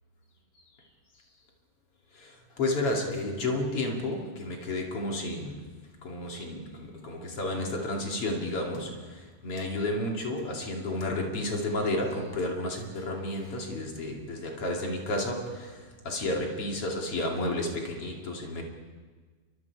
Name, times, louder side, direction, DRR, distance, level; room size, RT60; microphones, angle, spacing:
voice 1, 2.1-18.6, left 1 dB, 45° left, 0 dB, 3.4 m, -32 dB
29.0 x 24.0 x 4.8 m, 1.4 s
omnidirectional pair, 3.9 m